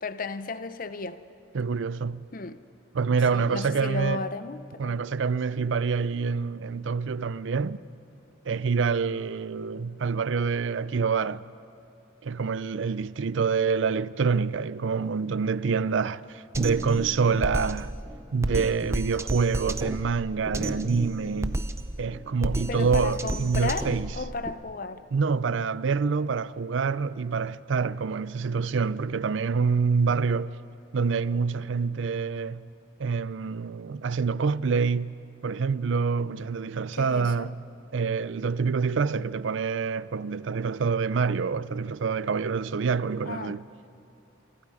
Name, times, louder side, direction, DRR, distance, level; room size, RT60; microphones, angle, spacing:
voice 1, 0.0-1.2 2.3-2.6 3.3-5.0 22.7-23.9 24.2-25.0 36.9-37.5 43.2-43.6, left 3 dB, 45° left, 0.7 m, -34 dB
voice 2, 1.5-2.3 2.9-4.2 4.8-7.8 8.4-11.4 12.2-17.9 18.3-21.6 22.0-24.1 25.1-30.6 30.9-32.7 33.0-35.2 35.4-37.6 37.9-43.6, right 5 dB, 70° right, 0.4 m, -26 dB
Drum kit, 16.5-24.5, right 1 dB, 15° right, 0.6 m, -32 dB
28.0 x 24.0 x 4.9 m
head